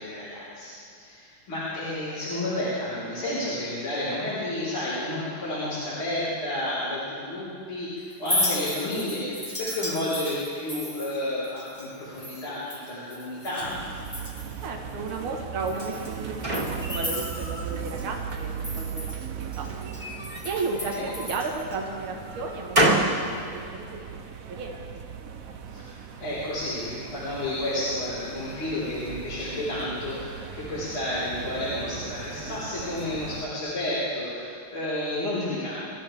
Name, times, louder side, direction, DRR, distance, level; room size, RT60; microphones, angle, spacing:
voice 1, 0.0-13.7 20.8-21.0 25.7-35.8, left 1 dB, 70° left, -12 dB, 5.2 m, -31 dB
Chink clink, 8.1-13.8 14.0-14.7 15.1-15.2 15.7-18.0 18.3-21.8, left 1 dB, 10° left, 1.5 m, -34 dB
sound 1, 13.6-33.5, right 6 dB, 55° right, 1.0 m, -38 dB
voice 2, 14.6-19.7 20.4-24.1 24.5-25.1, right 3 dB, 75° right, 1 dB, 2.3 m, -34 dB
sound 2, 15.7-17.7 18.1-18.9 19.8-21.3 21.9-23.2, right 1 dB, 20° right, 2.2 m, -28 dB
28.0 x 13.5 x 3.5 m, 2.5 s
omnidirectional pair, 2.4 m